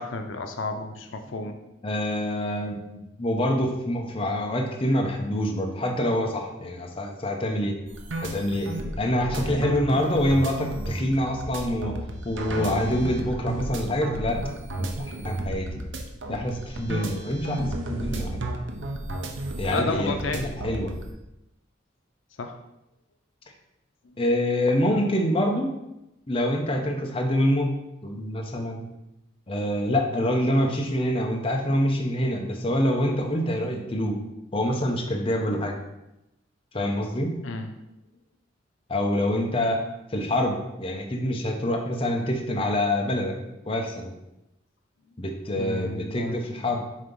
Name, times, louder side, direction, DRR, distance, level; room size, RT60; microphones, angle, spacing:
voice 1, 0.0-1.6 19.7-20.7 22.4-22.6 24.0-24.2 37.4-37.7 45.5-46.4, left 3 dB, 90° left, 6 dB, 0.6 m, -31 dB
voice 2, 1.8-7.7 8.2-8.7 9.0-11.9 12.2-14.4 14.8-15.7 16.3-18.4 19.6-20.9 24.2-25.7 26.3-27.7 28.0-28.9 29.5-34.2 34.5-35.7 36.7-37.3 38.9-39.8 40.1-43.3 43.7-44.1 45.2-46.8, left 1 dB, 30° left, 1 dB, 0.8 m, -26 dB
sound 1, 7.9-21.1, right 1 dB, 75° right, 0.8 m, -33 dB
7.4 x 2.9 x 5.3 m, 0.91 s
head